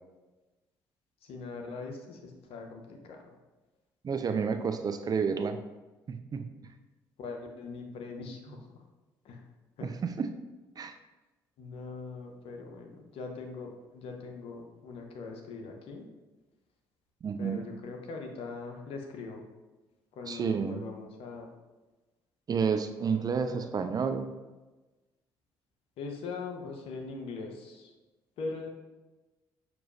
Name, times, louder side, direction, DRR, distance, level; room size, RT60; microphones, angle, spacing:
voice 1, 1.2-3.3 7.2-8.8 9.2-9.4 9.8-9.9 11.6-16.1 17.4-19.4 20.1-21.5 23.6-23.7 26.0-27.9 28.4-28.7, left 4 dB, 60° left, 3 dB, 0.7 m, -41 dB
voice 2, 4.0-5.6 6.1-6.5 9.8-10.3 10.8-11.0 17.2-17.6 20.3-20.8 22.5-24.3, right 6 dB, 35° right, 8 dB, 0.4 m, -30 dB
6.1 x 3.0 x 2.6 m, 1.2 s
hypercardioid pair, 45°, 11 cm